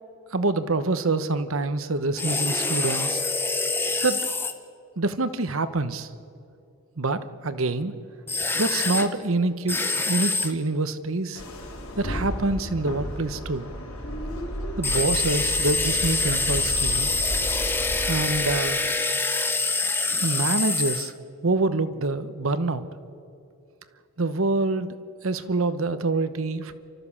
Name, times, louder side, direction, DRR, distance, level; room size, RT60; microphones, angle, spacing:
voice 1, 0.3-3.2 4.0-4.3 5.0-6.1 7.0-7.9 8.6-9.8 10.1-11.4 12.0-13.7 14.8-17.1 18.1-18.8 20.2-21.1 21.4-22.8 24.2-25.0 25.2-26.7, right 3 dB, 70° right, 12 dB, 1.0 m, -26 dB
sound 1, 2.2-4.5 8.3-9.1 9.7-10.5 14.8-21.1, left 3 dB, 10° left, 0.9 m, -25 dB
sound 2, 11.4-18.4, equal, 75° left, 4.0 m, -33 dB
29.5 x 13.5 x 7.2 m, 2.6 s
head